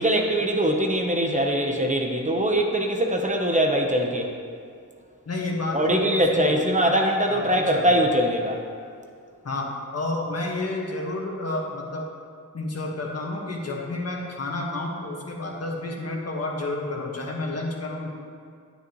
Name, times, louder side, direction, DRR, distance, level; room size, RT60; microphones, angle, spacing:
voice 1, 0.0-4.3 5.7-8.6, equal, 25° right, 2 dB, 0.9 m, -22 dB
voice 2, 5.2-6.5 7.3-7.9 9.4-12.1 12.5-18.1, left 2 dB, 50° left, -1 dB, 1.6 m, -30 dB
9.9 x 9.0 x 3.1 m, 2.2 s
cardioid pair, 75°, 31 cm